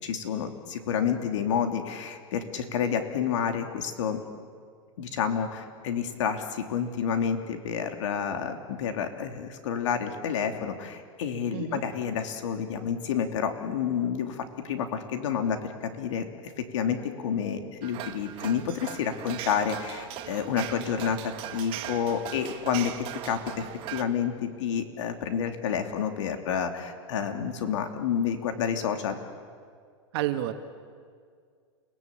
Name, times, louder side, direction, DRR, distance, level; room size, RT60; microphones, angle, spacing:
voice 1, 0.0-4.2 5.0-15.6 15.8-16.2 16.7-22.9 23.2-29.2, left 7 dB, 70° left, 5 dB, 3.2 m, -29 dB
sound 1, 17.8-24.0, right 13 dB, 35° right, 1.7 m, -39 dB
voice 2, 30.1-30.5, right 14 dB, 55° right, 7 dB, 2.1 m, -29 dB
30.0 x 19.0 x 9.0 m, 2.1 s
supercardioid pair, 150°, 16 cm